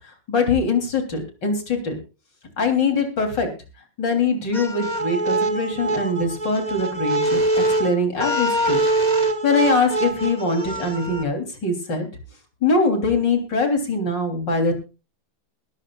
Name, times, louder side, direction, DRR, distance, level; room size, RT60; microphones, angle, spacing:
voice 1, 0.3-2.0 2.6-3.5 4.0-8.8 9.4-12.1 12.6-14.7, left 3 dB, 70° left, 4 dB, 4.1 m, -22 dB
sound 1, 4.5-11.2, right 2 dB, 25° right, 1.6 m, -23 dB
21.0 x 13.0 x 2.4 m, 0.31 s
omnidirectional pair, 2.0 m